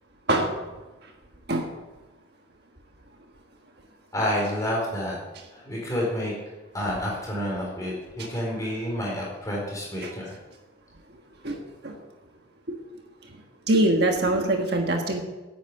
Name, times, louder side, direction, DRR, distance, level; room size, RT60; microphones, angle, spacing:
voice 1, 4.1-5.2 5.5-6.3 6.7-10.4, equal, 15° left, -3 dB, 4.5 m, -29 dB
voice 2, 11.4-12.0 12.7-12.8 13.7-15.2, right 1 dB, 55° right, 2 dB, 1.5 m, -23 dB
10.5 x 9.1 x 8.1 m, 1.2 s
head